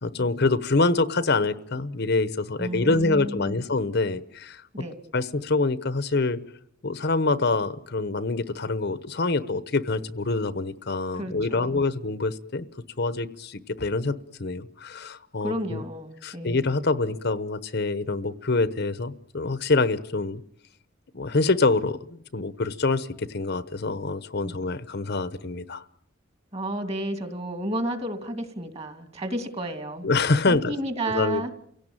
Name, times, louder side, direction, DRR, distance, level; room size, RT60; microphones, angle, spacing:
voice 1, 0.0-4.6 5.1-6.4 6.8-12.6 13.0-15.8 16.2-20.4 21.1-25.8 30.0-30.7 31.1-31.5, left 3 dB, 55° left, 15 dB, 1.0 m, -25 dB
voice 2, 2.6-3.6 4.7-5.0 11.1-11.8 15.4-16.6 24.4-24.6 26.5-30.1 30.5-31.5, right 1 dB, 30° right, 8 dB, 2.7 m, -32 dB
29.0 x 17.5 x 9.0 m, 0.72 s
head